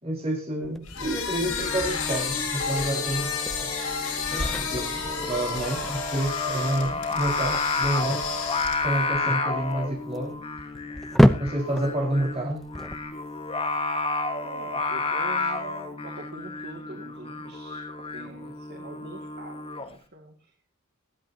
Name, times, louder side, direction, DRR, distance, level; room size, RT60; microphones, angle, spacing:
voice 1, 0.0-3.3 3.6-3.7 4.3-8.3 8.8-10.4 11.4-12.7, right 1 dB, 30° right, -1 dB, 5.0 m, -29 dB
sound 1, 0.6-13.7, equal, ahead, 0.7 m, -29 dB
sound 2, 0.8-9.0, left 5 dB, 90° left, 6.7 m, -31 dB
Singing, 1.4-19.9, left 3 dB, 25° left, 1.6 m, -31 dB
voice 2, 10.8-11.2 14.4-17.8 18.1-20.5, right 2 dB, 45° right, 2 dB, 2.4 m, -44 dB
20.5 x 13.5 x 2.9 m, 0.35 s
head